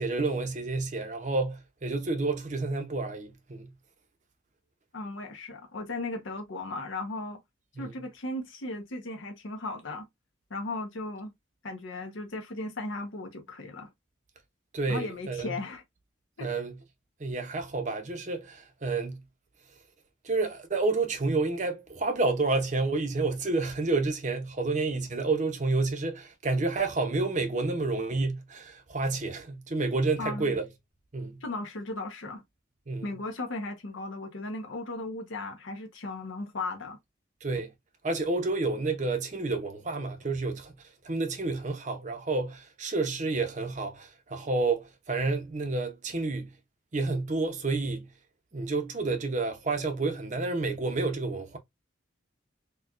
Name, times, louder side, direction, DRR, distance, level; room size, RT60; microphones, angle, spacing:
voice 1, 0.0-3.7 7.8-7.9 14.7-15.6 16.4-16.8 17.2-19.2 20.2-30.7 31.1-31.4 32.9-33.1 37.4-37.7 38.0-40.7 41.0-46.5 46.9-48.1 48.5-51.6, right 3 dB, 35° right, 0.7 m, -29 dB
voice 2, 4.9-7.4 7.8-10.1 10.5-11.3 11.6-13.9 14.9-15.8 16.4-16.5 30.2-30.5 31.4-32.4 33.0-37.0, left 2 dB, 75° left, 0.8 m, -36 dB
4.3 x 2.3 x 2.4 m
head